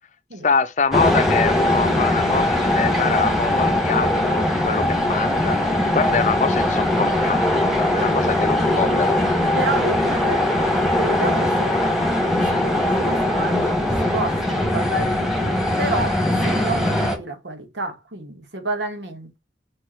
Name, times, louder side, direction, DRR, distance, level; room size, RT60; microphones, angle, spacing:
voice 1, 0.4-5.6 5.9-9.2, left 5 dB, 45° left, 0.6 m, -24 dB
sound 1, 0.9-17.2, left 1 dB, ahead, 1.6 m, -20 dB
voice 2, 9.5-16.2 16.4-19.4, right 2 dB, 80° right, 1.7 m, -30 dB
4.8 x 4.7 x 4.5 m
head